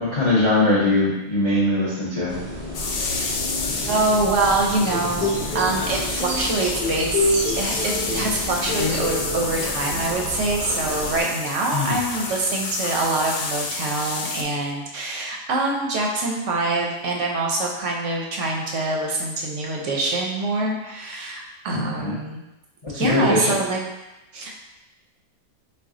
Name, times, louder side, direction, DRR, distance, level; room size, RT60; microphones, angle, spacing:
voice 1, 0.0-2.4 11.7-12.0 21.7-22.2 22.8-23.6, left 2 dB, 40° left, -7 dB, 0.4 m, -21 dB
sound 1, 2.3-11.2, equal, 45° right, 0.4 m, -32 dB
sound 2, 2.7-14.4, left 3 dB, 75° left, 1.0 m, -30 dB
voice 2, 3.9-5.3 5.5-22.4 22.9-23.8 24.3-24.6, right 2 dB, 65° right, 0 dB, 0.8 m, -25 dB
sound 3, 4.9-5.8 6.2-8.4 8.7-9.2, left 2 dB, 25° left, 1.0 m, -26 dB
4.2 x 2.3 x 3.6 m, 1.0 s
omnidirectional pair, 1.5 m